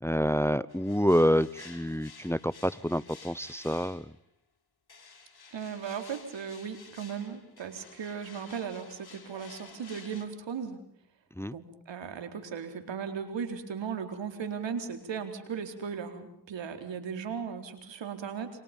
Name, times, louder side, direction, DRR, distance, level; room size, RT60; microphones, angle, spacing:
voice 1, 0.0-4.0 11.4-11.5, equal, 5° left, 20 dB, 0.9 m, -27 dB
sound 1, 0.7-4.2 4.9-10.3, left 5 dB, 55° left, 5.6 m, -52 dB
voice 2, 5.5-10.8 11.5-18.5, right 7 dB, 80° right, 8 dB, 4.3 m, -37 dB
30.0 x 26.0 x 5.4 m, 0.69 s
cardioid pair, 50°, 44 cm